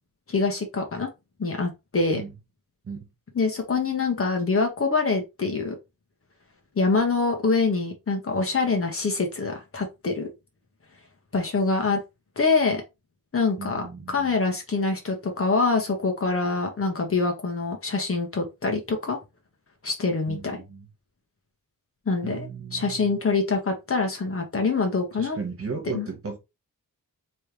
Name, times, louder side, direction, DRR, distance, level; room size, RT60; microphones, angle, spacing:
voice 1, 0.3-1.1 1.4-2.2 3.3-5.8 6.7-10.3 11.3-12.0 12.4-12.8 13.3-19.2 19.8-20.6 22.1-25.4 25.9-26.1, left 4 dB, 40° left, 1.3 m, -25 dB
voice 2, 13.6-14.3 20.3-20.9 22.2-23.2 25.2-26.4, right 5 dB, 45° right, 1.6 m, -36 dB
4.4 x 3.3 x 3.3 m
wide cardioid pair, 150°, 33 cm